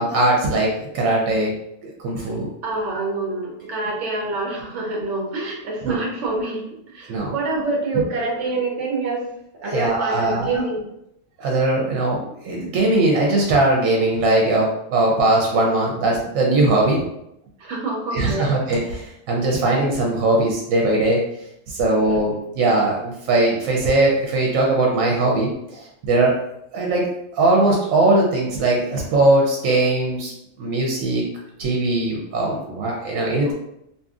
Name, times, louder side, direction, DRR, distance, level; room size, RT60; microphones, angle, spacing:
voice 1, 0.0-1.5 2.0-2.5 5.8-6.0 7.1-7.3 9.7-10.6 11.4-17.0 18.1-21.2 21.7-26.4 26.7-30.3 30.6-31.2 31.6-33.5, right 2 dB, 90° right, -1 dB, 1.0 m, -20 dB
voice 2, 2.6-9.2 9.6-10.8 17.6-18.5 33.4-33.5, right 3 dB, 70° right, 0 dB, 1.0 m, -26 dB
2.7 x 2.6 x 2.4 m, 0.79 s
omnidirectional pair, 1.4 m